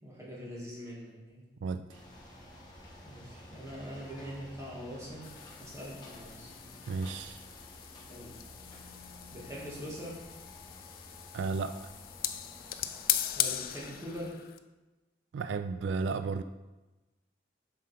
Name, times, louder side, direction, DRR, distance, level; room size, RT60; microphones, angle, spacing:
voice 1, 0.0-1.4 3.0-5.3 5.6-6.5 8.1-8.4 9.3-10.2 13.3-14.4, equal, 15° right, -5 dB, 2.0 m, -43 dB
voice 2, 1.6-2.0 6.9-7.5 11.3-11.8 15.3-16.4, right 4 dB, 80° right, 10 dB, 0.3 m, -33 dB
sound 1, 1.9-14.2, left 1 dB, 20° left, 1.3 m, -51 dB
sound 2, 5.2-14.6, left 12 dB, 50° left, 0.4 m, -38 dB
7.3 x 5.3 x 4.2 m, 1.1 s
head